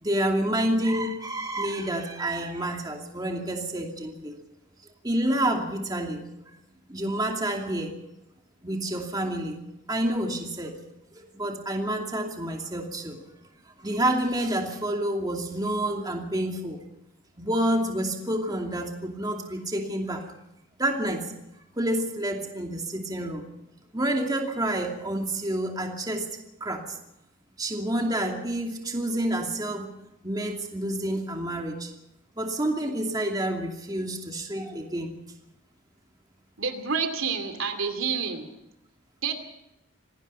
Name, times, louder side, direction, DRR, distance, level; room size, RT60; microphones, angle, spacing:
voice 1, 0.0-4.4 5.0-6.2 6.9-7.9 8.6-9.6 9.9-10.8 11.1-13.2 13.8-16.8 17.4-20.2 20.8-21.3 21.8-23.5 23.9-26.3 26.6-26.8 27.6-29.9 30.2-31.9 32.4-35.1, right 1 dB, 20° right, 2 dB, 2.6 m, -28 dB
voice 2, 36.6-38.5 39.2-39.3, right 5 dB, 80° right, 6 dB, 2.7 m, -28 dB
26.0 x 18.0 x 5.6 m, 0.90 s
head